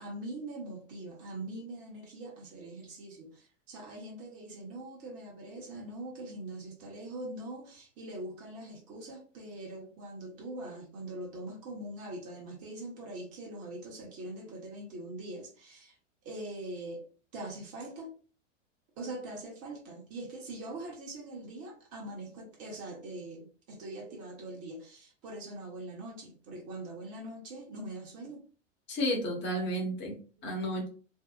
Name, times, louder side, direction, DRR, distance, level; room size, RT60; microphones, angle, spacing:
voice 1, 0.0-16.0 16.2-17.0 17.3-18.1 19.0-28.4, right 1 dB, 40° right, 0.9 m, -42 dB
voice 2, 28.9-30.9, equal, 30° left, 0.9 m, -32 dB
2.6 x 2.0 x 2.4 m
hypercardioid pair, 105°, 38 cm